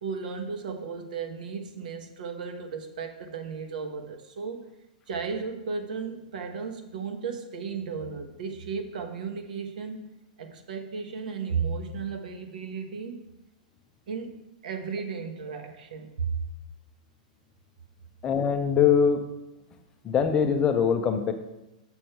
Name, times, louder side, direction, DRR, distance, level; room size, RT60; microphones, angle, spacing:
voice 1, 0.0-4.7 5.1-10.1 10.4-13.3 14.1-14.3 14.6-16.4, right 5 dB, 75° right, 6 dB, 1.2 m, -34 dB
voice 2, 18.2-19.2 20.0-21.3, left 7 dB, 20° left, 7 dB, 0.6 m, -22 dB
6.9 x 6.2 x 4.5 m, 0.96 s
supercardioid pair, 155°, 4 cm